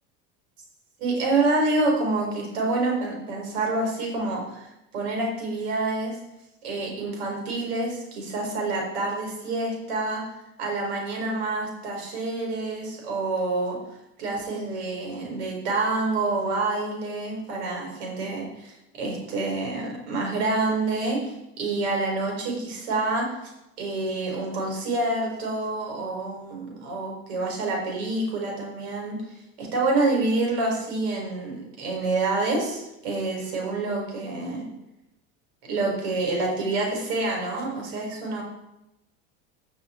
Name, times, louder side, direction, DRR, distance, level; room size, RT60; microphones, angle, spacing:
voice 1, 1.0-4.7 4.9-6.2 6.6-10.2 10.6-13.8 14.2-23.3 23.8-29.2 29.6-34.6 35.7-38.4, right 2 dB, 85° right, 0 dB, 4.8 m, -27 dB
18.0 x 6.2 x 4.5 m, 0.92 s
supercardioid pair, 115°, 31 cm